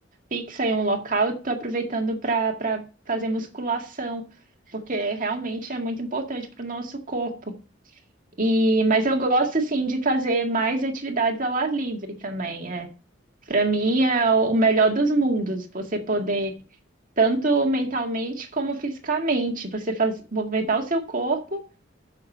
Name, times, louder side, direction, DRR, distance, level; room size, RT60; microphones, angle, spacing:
voice 1, 0.3-2.8 3.1-4.2 4.7-7.5 8.4-12.9 13.5-16.5 17.2-21.6, right 2 dB, 45° right, 2.0 m, -24 dB
7.5 x 7.1 x 5.4 m
head